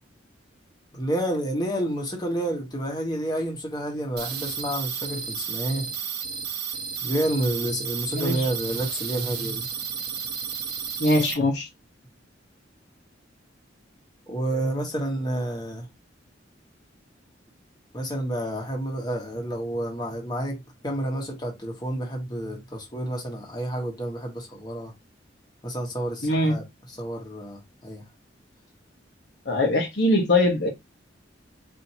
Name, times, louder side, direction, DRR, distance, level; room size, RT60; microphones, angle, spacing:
voice 1, 0.9-5.9 7.0-9.7 14.3-15.9 17.9-24.9 25.6-28.0, right 1 dB, 20° left, 1.2 m, -29 dB
sound 1, 4.2-11.3, right 7 dB, 60° right, 0.8 m, -32 dB
voice 2, 8.1-8.5 11.0-11.7 26.2-26.5 29.4-30.7, left 1 dB, 60° left, 1.0 m, -22 dB
4.3 x 2.7 x 2.8 m
head